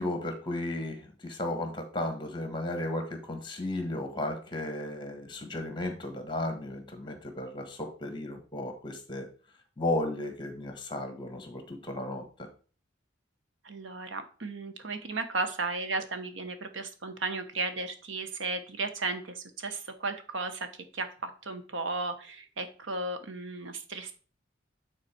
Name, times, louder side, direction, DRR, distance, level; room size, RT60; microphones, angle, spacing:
voice 1, 0.0-9.3 9.8-12.5, left 1 dB, 25° left, 6 dB, 1.4 m, -34 dB
voice 2, 13.6-24.1, right 3 dB, 75° right, 8 dB, 1.1 m, -35 dB
9.0 x 4.1 x 4.4 m, 0.39 s
head